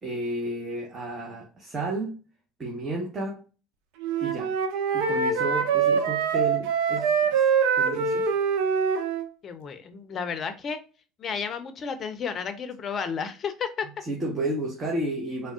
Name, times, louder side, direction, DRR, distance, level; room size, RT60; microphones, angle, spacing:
voice 1, 0.0-2.2 2.6-3.4 4.2-4.5 4.9-7.4 7.8-8.3 14.0-15.5, right 2 dB, 30° right, 0.8 m, -32 dB
Wind instrument woodwind instrument, 4.0-9.3, right 6 dB, 70° right, 0.4 m, -24 dB
voice 2, 9.4-10.8 11.2-13.9, left 6 dB, 40° left, 0.5 m, -32 dB
3.4 x 2.1 x 2.3 m
hypercardioid pair, 70°, 0 cm